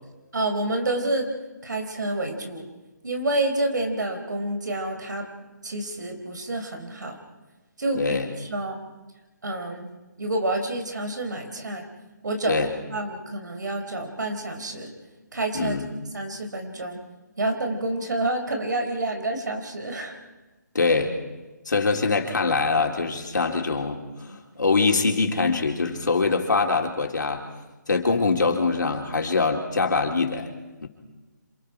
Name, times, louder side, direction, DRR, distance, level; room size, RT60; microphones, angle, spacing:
voice 1, 0.3-1.3 1.6-2.6 3.0-5.3 5.6-7.2 7.8-8.8 9.4-9.9 10.2-11.9 12.2-14.9 15.3-15.8 16.1-17.0 17.4-20.1 24.3-24.4, right 2 dB, 75° right, 5 dB, 4.2 m, -28 dB
voice 2, 8.0-8.3 12.5-12.7 15.5-15.9 20.7-21.1 21.7-27.4 27.9-30.5 30.8-30.9, left 4 dB, 80° left, 2 dB, 3.5 m, -23 dB
26.5 x 25.5 x 5.1 m, 1.1 s
hypercardioid pair, 165°, 10 cm